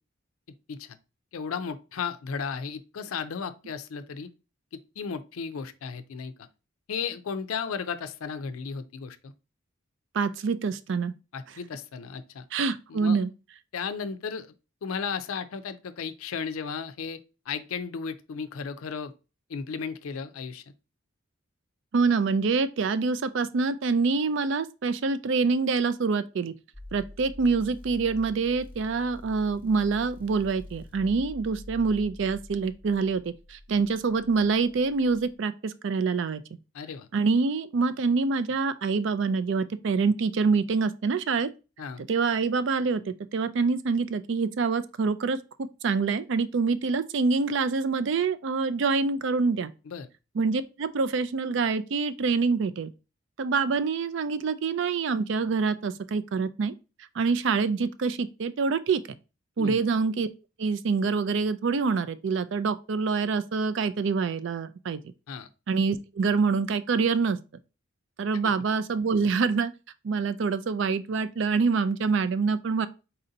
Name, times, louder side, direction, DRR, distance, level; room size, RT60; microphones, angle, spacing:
voice 1, 1.3-4.3 4.7-6.3 6.9-9.3 11.3-12.4 12.9-13.2 13.7-14.5 14.8-17.2 17.5-19.1 19.5-20.6 36.7-37.1 41.8-42.0 49.9-50.1 59.6-59.8 65.3-65.5, left 6 dB, 80° left, 0.4 m, -34 dB
voice 2, 10.1-11.1 12.5-13.3 21.9-26.5 26.9-36.4 37.1-41.5 42.1-49.7 50.4-52.9 53.4-56.7 57.1-59.0 59.6-60.3 60.6-65.0 65.7-67.4 68.2-69.7 70.0-72.9, right 4 dB, 60° right, 0.4 m, -26 dB
sound 1, 26.7-35.3, left 1 dB, 10° left, 0.8 m, -46 dB
4.2 x 2.7 x 3.8 m
head